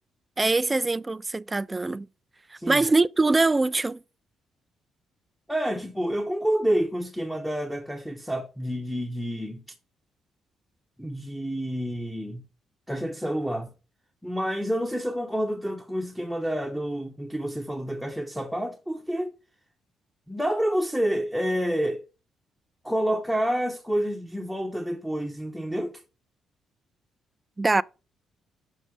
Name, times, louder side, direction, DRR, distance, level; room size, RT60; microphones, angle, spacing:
voice 1, 0.4-2.1 2.7-4.0 27.6-27.8, right 3 dB, 20° right, 0.3 m, -23 dB
voice 2, 2.5-2.9 5.5-9.6 11.0-12.4 12.9-13.7 14.2-19.3 20.3-22.0 22.8-26.0, equal, ahead, 0.9 m, -28 dB
6.5 x 6.1 x 3.2 m
cardioid pair, 90°, 0 cm